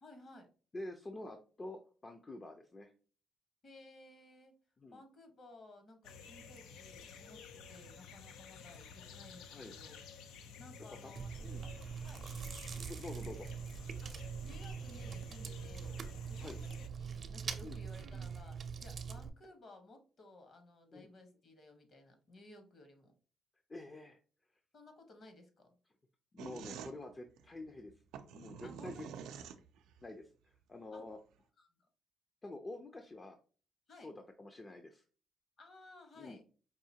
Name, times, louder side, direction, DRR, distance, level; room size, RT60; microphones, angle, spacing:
voice 1, 0.0-0.5 3.6-4.5 4.9-9.9 10.6-12.3 13.2-13.3 14.0-14.2 14.4-16.0 16.3-23.1 24.7-25.7 28.6-29.4 30.9-31.1 31.6-31.9 33.9-34.1 35.6-36.4, left 2 dB, 50° left, 6 dB, 1.2 m, -57 dB
voice 2, 0.7-2.9 4.8-5.0 9.5-9.7 10.9-11.1 11.4-11.7 12.8-13.5 16.4-16.6 17.6-17.8 20.9-21.1 23.7-24.2 26.3-27.9 28.3-29.1 30.0-31.2 32.4-33.4 34.0-35.0 36.2-36.4, left 2 dB, 30° left, 5 dB, 0.5 m, -48 dB
sound 1, 6.0-16.9, left 6 dB, 90° left, 0.4 m, -53 dB
Chewing mastication, 11.1-19.3, right 6 dB, 45° right, 0.6 m, -43 dB
sound 2, 26.4-30.0, right 7 dB, 90° right, 0.4 m, -48 dB
4.7 x 2.7 x 2.8 m, 0.39 s
cardioid pair, 90°, 0 cm